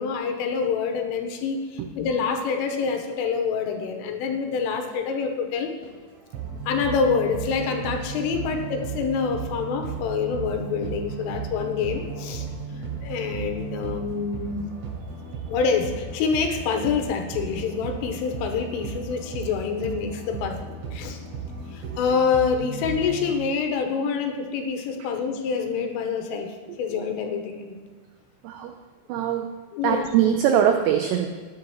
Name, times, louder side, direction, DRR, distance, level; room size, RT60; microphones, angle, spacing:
voice 1, 0.0-5.7 6.7-12.5 13.0-14.7 15.5-20.6 20.9-21.2 21.7-27.8 29.7-30.1, left 5 dB, 90° left, 4 dB, 3.6 m, -26 dB
sound 1, 5.8-23.3, right 4 dB, 65° right, 4.4 m, -35 dB
voice 2, 29.1-29.5 29.8-31.3, right 9 dB, 90° right, 6 dB, 2.4 m, -22 dB
16.0 x 10.5 x 3.0 m, 1.4 s
omnidirectional pair, 5.7 m